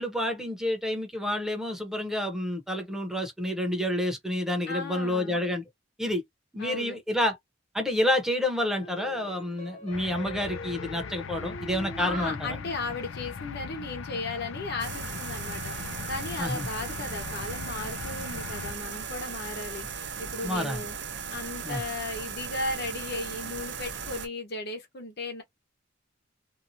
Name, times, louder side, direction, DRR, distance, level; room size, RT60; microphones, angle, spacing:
voice 1, 0.0-5.6 6.0-6.2 6.5-7.4 7.7-12.5 16.4-16.7 20.4-20.8 21.6-21.8, left 1 dB, ahead, 0.9 m, -29 dB
voice 2, 4.7-5.4 6.6-7.0 12.0-15.7 16.1-20.9 21.3-25.4, left 2 dB, 60° left, 1.2 m, -36 dB
sound 1, 8.8-13.4, equal, 35° left, 0.8 m, -44 dB
sound 2, 9.9-18.7, left 5 dB, 90° left, 0.4 m, -39 dB
sound 3, 14.8-24.3, right 6 dB, 65° right, 0.7 m, -37 dB
2.8 x 2.3 x 2.7 m
head